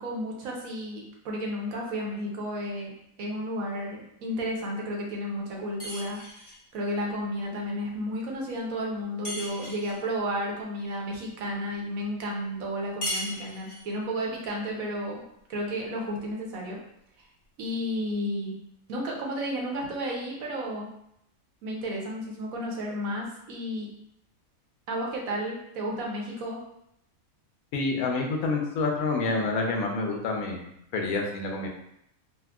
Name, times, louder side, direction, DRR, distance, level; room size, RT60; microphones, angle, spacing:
voice 1, 0.0-2.9 3.2-6.2 6.7-15.2 15.5-16.8 17.6-18.5 18.9-20.9 21.6-23.9 24.9-26.6, equal, 75° right, -1 dB, 1.1 m, -32 dB
sound 1, 5.8-6.6 9.2-10.0 13.0-13.9, left 1 dB, 30° left, 0.4 m, -36 dB
voice 2, 27.7-31.7, left 3 dB, 80° left, 1 dB, 1.0 m, -28 dB
4.3 x 2.1 x 2.3 m, 0.76 s
omnidirectional pair, 1.5 m